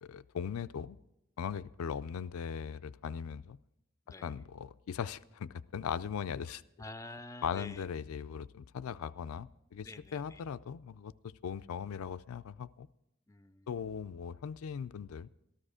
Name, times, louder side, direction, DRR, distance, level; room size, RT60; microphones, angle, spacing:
voice 1, 0.0-1.0 1.4-3.6 4.2-6.6 7.4-12.9 13.7-15.3, left 7 dB, 85° left, 13 dB, 0.4 m, -39 dB
voice 2, 6.5-7.8 9.8-10.4 13.3-13.7, left 2 dB, 15° left, 12 dB, 0.4 m, -48 dB
13.5 x 12.0 x 4.9 m, 0.88 s
head